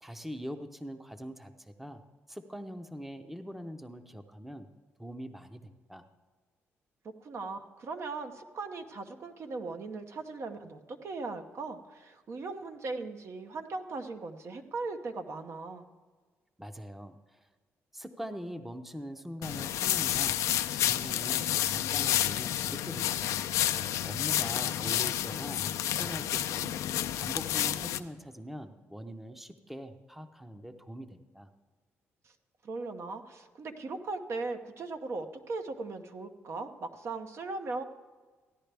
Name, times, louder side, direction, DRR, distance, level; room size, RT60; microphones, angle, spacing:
voice 1, 0.0-2.0 2.3-4.7 5.0-6.1 16.6-17.5 17.9-20.4 20.7-23.4 24.0-26.8 27.1-31.5, equal, 5° right, 8 dB, 0.7 m, -43 dB
voice 2, 7.0-15.8 24.2-24.3 24.8-24.9 32.2-32.3 32.6-37.8, right 3 dB, 60° right, 6 dB, 0.9 m, -38 dB
sound 1, 19.4-28.0, left 12 dB, 90° left, 0.4 m, -30 dB
15.0 x 10.0 x 3.4 m, 1.4 s
cardioid pair, 80°, 5 cm